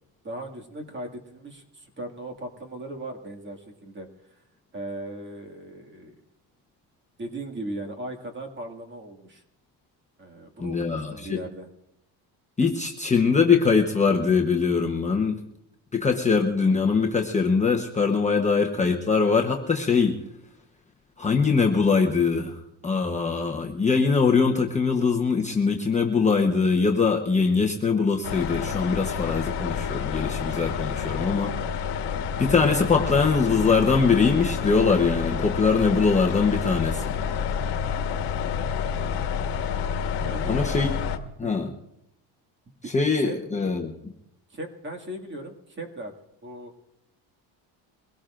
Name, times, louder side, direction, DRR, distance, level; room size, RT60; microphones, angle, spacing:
voice 1, 0.2-4.1 4.7-6.1 7.2-9.4 10.2-11.7 32.1-32.3 40.2-40.7 41.4-41.7 42.8-43.3 44.5-46.1 46.4-46.7, right 1 dB, 25° right, 2 dB, 2.1 m, -38 dB
voice 2, 10.6-11.4 12.6-15.4 15.9-20.2 21.2-31.5 32.4-37.2 40.5-40.9 41.4-41.7 42.9-44.1, left 5 dB, 15° left, 1 dB, 1.0 m, -22 dB
sound 1, 28.2-41.2, left 7 dB, 65° left, 1.4 m, -29 dB
23.0 x 17.0 x 2.5 m, 0.82 s
cardioid pair, 130°, 44 cm